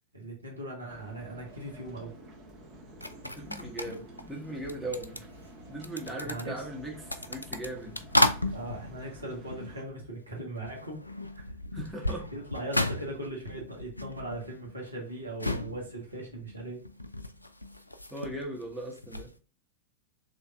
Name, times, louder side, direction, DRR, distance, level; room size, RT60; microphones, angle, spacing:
voice 1, 0.1-2.1 6.1-6.7 8.5-11.0 11.3-11.5 12.0-16.8, right 1 dB, 80° right, -1 dB, 1.4 m, -39 dB
sound 1, 0.9-9.8, equal, 35° right, 1.7 m, -50 dB
sound 2, 3.0-10.3 10.6-19.4, left 1 dB, 85° left, 0.3 m, -34 dB
voice 2, 3.3-5.3 5.7-8.0 11.7-12.2 18.1-19.3, right 1 dB, ahead, -3 dB, 1.5 m, -38 dB
5.1 x 3.3 x 2.5 m, 0.36 s
figure-of-eight pair, 90°, 0 cm